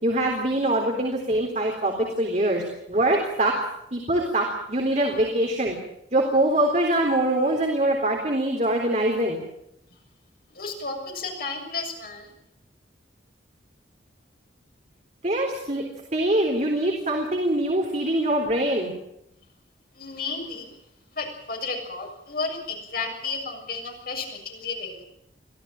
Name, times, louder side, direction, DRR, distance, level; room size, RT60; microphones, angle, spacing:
voice 1, 0.0-3.6 3.9-5.8 6.1-9.4 15.2-15.8 16.1-18.9, right 1 dB, 40° right, 1 dB, 3.8 m, -23 dB
voice 2, 10.5-12.3 19.9-20.7 21.1-25.0, left 4 dB, 50° left, 1 dB, 6.9 m, -33 dB
24.5 x 16.0 x 8.9 m, 0.80 s
head